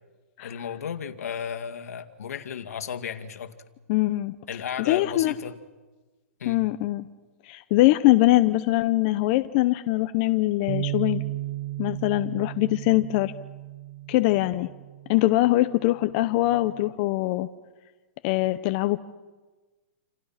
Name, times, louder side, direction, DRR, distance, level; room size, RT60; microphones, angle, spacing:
voice 1, 0.4-3.5 4.5-5.6 6.4-6.6, left 7 dB, 80° left, 7 dB, 2.1 m, -34 dB
voice 2, 3.9-4.3 4.9-5.3 6.5-7.1 7.5-11.2 11.8-13.3 14.1-14.7 15.1-17.5 18.2-19.0, left 17 dB, 35° left, 10 dB, 0.8 m, -22 dB
Bass guitar, 10.7-16.9, right 16 dB, 50° right, 0.9 m, -35 dB
28.5 x 28.0 x 5.8 m, 1.3 s
hypercardioid pair, 160°, 8 cm